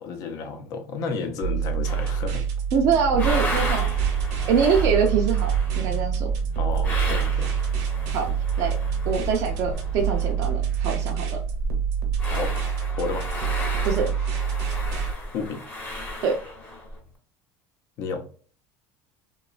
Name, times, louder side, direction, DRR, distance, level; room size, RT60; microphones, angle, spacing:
voice 1, 0.0-2.4 6.6-7.5 12.3-12.5 13.0-13.3 15.3-15.6 18.0-18.2, left 4 dB, 50° left, 0.6 m, -31 dB
sound 1, 1.4-15.1, right 7 dB, 75° right, 0.8 m, -27 dB
sound 2, 1.8-2.4 2.8-10.6 10.9-11.0 11.2-17.0, left 1 dB, 20° left, 0.9 m, -34 dB
voice 2, 2.7-3.9 4.5-6.3 8.1-8.3 8.6-8.7 9.1-11.2 13.8-14.1 16.2-16.4, right 6 dB, 45° right, 0.5 m, -24 dB
sound 3, 2.8-11.2, right 4 dB, 5° right, 0.7 m, -34 dB
2.9 x 2.3 x 2.3 m
cardioid pair, 140°, 8 cm